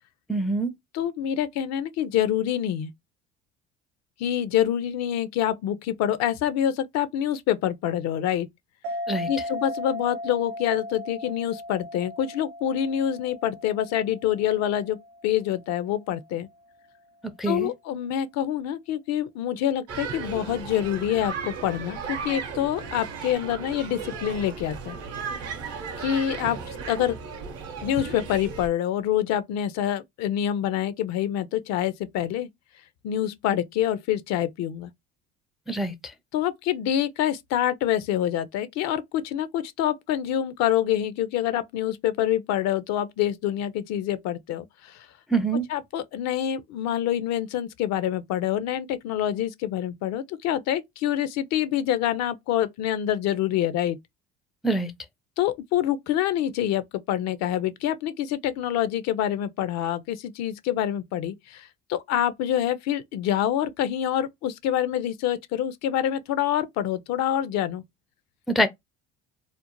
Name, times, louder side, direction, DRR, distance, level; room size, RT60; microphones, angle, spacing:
voice 1, 0.3-0.7 9.1-9.3 17.4-17.7 35.7-35.9 45.3-45.7 54.6-54.9 68.5-68.7, right 2 dB, ahead, 0.3 m, -24 dB
voice 2, 0.9-2.9 4.2-8.5 9.3-15.0 15.2-16.5 17.4-25.0 26.0-27.2 27.8-32.5 33.0-34.9 36.3-45.1 45.7-54.0 55.4-67.8, left 11 dB, 60° left, 0.4 m, -26 dB
sound 1, 8.8-15.9, left 1 dB, 90° right, 0.5 m, -37 dB
sound 2, 19.9-28.7, right 5 dB, 55° right, 0.7 m, -35 dB
2.5 x 2.0 x 2.9 m
hypercardioid pair, 70°, 30 cm